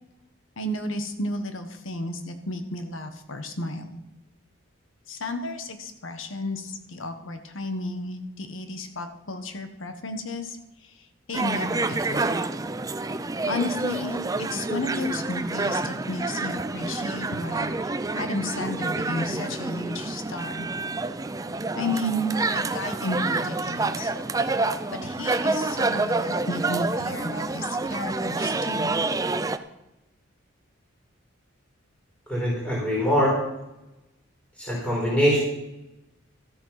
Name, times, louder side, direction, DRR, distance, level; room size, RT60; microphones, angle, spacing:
voice 1, 0.6-4.0 5.1-12.4 13.4-20.7 21.8-24.1 24.9-28.9, left 1 dB, 80° left, 8 dB, 1.4 m, -32 dB
sound 1, 11.3-29.6, right 3 dB, 15° right, 0.4 m, -28 dB
voice 2, 32.3-33.3 34.6-35.4, equal, 5° left, -5 dB, 4.6 m, -23 dB
13.5 x 8.8 x 5.9 m, 0.95 s
head